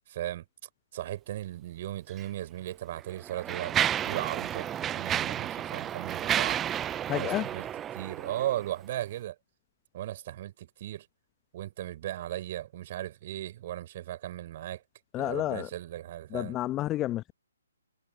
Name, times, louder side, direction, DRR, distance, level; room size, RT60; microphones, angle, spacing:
voice 1, 0.1-0.5 0.9-6.6 7.1-7.7 7.9-9.4 9.9-11.1 11.5-14.8 15.2-16.5, right 13 dB, 40° right, 4.1 m, -37 dB
Mechanisms, 2.1-2.2 3.0-8.7, right 10 dB, 15° right, 0.4 m, -31 dB
voice 2, 7.1-7.5 15.1-15.7 16.3-17.3, left 15 dB, 20° left, 1.0 m, -30 dB
figure-of-eight pair, 135°, 0 cm